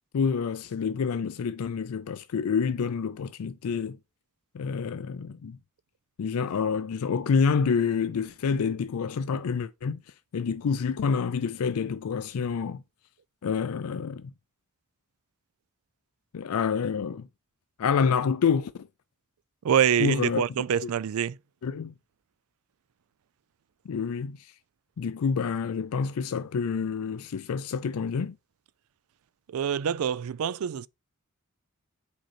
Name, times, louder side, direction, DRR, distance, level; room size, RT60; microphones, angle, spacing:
voice 1, 0.1-4.0 4.5-5.6 6.2-10.0 10.3-12.8 13.4-14.3 16.3-17.3 17.8-18.9 20.0-20.4 20.8-20.9 21.6-21.9 23.9-24.5 25.0-28.3, left 6 dB, 75° left, 0.4 m, -28 dB
voice 2, 19.6-21.4 29.5-30.9, right 8 dB, 70° right, 0.4 m, -25 dB
5.1 x 4.4 x 4.4 m
head